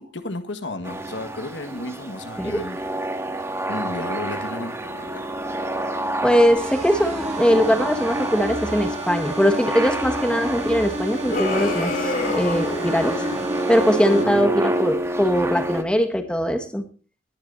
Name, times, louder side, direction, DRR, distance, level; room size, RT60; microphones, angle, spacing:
voice 1, 0.0-2.8 3.7-5.3 14.1-14.6, left 2 dB, 80° left, 7 dB, 1.6 m, -33 dB
sound 1, 0.8-15.8, right 1 dB, 15° right, 1.5 m, -28 dB
voice 2, 6.2-13.2 13.7-16.8, equal, 5° left, 7 dB, 1.5 m, -21 dB
sound 2, 6.6-14.2, right 1 dB, 35° right, 2.4 m, -31 dB
sound 3, 11.3-13.4, left 2 dB, 50° left, 3.0 m, -28 dB
20.0 x 10.5 x 2.7 m, 0.36 s
head